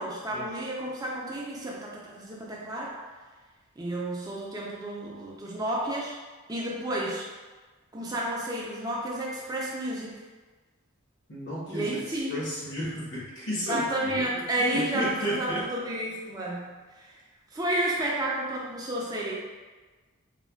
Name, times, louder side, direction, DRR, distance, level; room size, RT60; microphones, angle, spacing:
voice 1, 0.0-2.9 3.8-6.2 6.5-7.2 7.9-10.2 11.7-12.4 13.7-17.2 17.5-19.3, right 1 dB, 20° right, -4 dB, 0.4 m, -31 dB
voice 2, 11.3-15.6, equal, 55° left, -7 dB, 1.0 m, -33 dB
4.2 x 2.3 x 2.2 m, 1.3 s
head